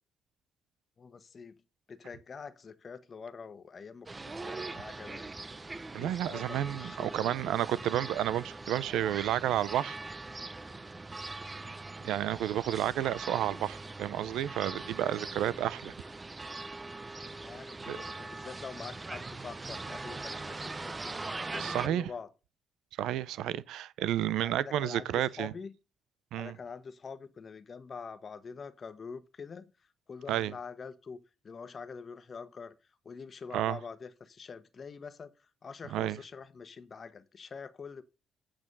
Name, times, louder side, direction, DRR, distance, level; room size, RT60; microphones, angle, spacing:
voice 1, 1.0-1.6 1.9-5.2 5.9-7.6 14.6-14.8 17.3-21.2 21.5-22.3 24.4-25.7 26.3-29.7 30.1-32.7 33.0-38.0, left 5 dB, 40° left, 1.1 m, -45 dB
sound 1, 4.1-21.9, right 3 dB, 20° right, 0.7 m, -41 dB
voice 2, 5.9-10.0 12.0-15.9 17.9-18.0 21.6-22.1 23.0-25.5 26.3-26.6 30.3-30.5 33.5-33.8 35.9-36.2, right 12 dB, 85° right, 0.5 m, -31 dB
8.7 x 6.2 x 5.4 m
cardioid pair, 90°, 0 cm